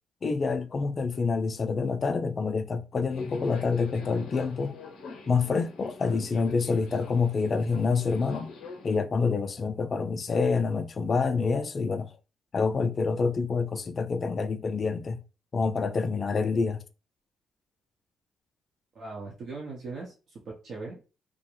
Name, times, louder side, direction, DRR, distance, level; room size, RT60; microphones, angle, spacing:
voice 1, 0.2-4.7 5.3-8.5 8.8-12.1 12.5-15.2 15.5-16.8, left 4 dB, 40° left, 0.3 m, -27 dB
Subway metro underground, 3.1-9.0, left 4 dB, 80° left, 0.6 m, -43 dB
voice 2, 18.9-21.1, right 3 dB, 60° right, 0.7 m, -40 dB
2.4 x 2.1 x 3.0 m
cardioid pair, 90°, 0 cm